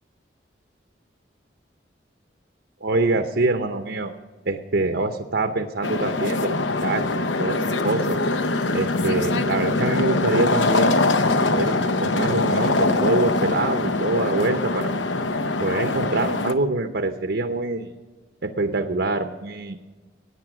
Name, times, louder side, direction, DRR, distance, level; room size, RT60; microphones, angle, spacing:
voice 1, 2.8-4.1 4.5-8.2 8.7-11.1 11.3-14.9 15.6-17.9 18.4-19.8, right 2 dB, 70° right, 6 dB, 0.8 m, -25 dB
sound 1, 5.8-16.5, left 2 dB, 80° left, 0.8 m, -23 dB
17.0 x 9.3 x 6.1 m, 1.3 s
head